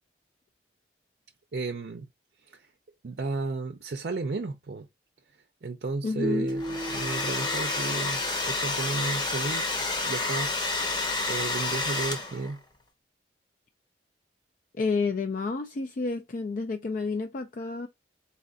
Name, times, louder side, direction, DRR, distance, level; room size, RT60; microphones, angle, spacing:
voice 1, 1.5-2.1 2.5-2.7 3.0-4.9 5.6-9.7 10.0-10.5 11.0-12.6, right 3 dB, 60° right, 0.5 m, -33 dB
voice 2, 6.0-6.5 14.7-17.9, left 4 dB, 45° left, 0.4 m, -30 dB
sound 1, 6.2-8.4, right 1 dB, 5° right, 0.5 m, -35 dB
Domestic sounds home sounds, 6.5-12.5, left 3 dB, 25° left, 0.8 m, -29 dB
4.1 x 2.4 x 3.9 m
head